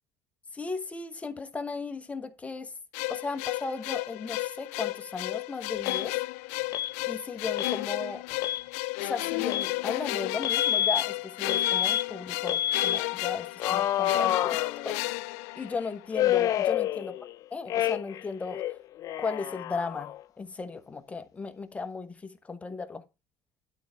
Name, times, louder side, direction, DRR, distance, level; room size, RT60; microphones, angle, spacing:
voice 1, 0.5-2.7 3.1-6.2 7.1-8.2 9.0-15.2 15.6-17.1 17.5-18.8 19.2-20.1 20.4-23.0, left 4 dB, 15° left, 1.1 m, -36 dB
sound 1, 2.9-16.2, left 22 dB, 90° left, 0.4 m, -33 dB
Alarm, 5.9-6.1 6.7-6.9 7.6-7.8 8.3-8.6 9.5-9.7 10.4-11.0 11.5-12.0 12.5-13.0 13.6-15.2 16.1-17.3 17.7-18.2 18.5-20.2, left 11 dB, 50° left, 0.7 m, -28 dB
11.5 x 4.7 x 5.6 m
cardioid pair, 125°, 8 cm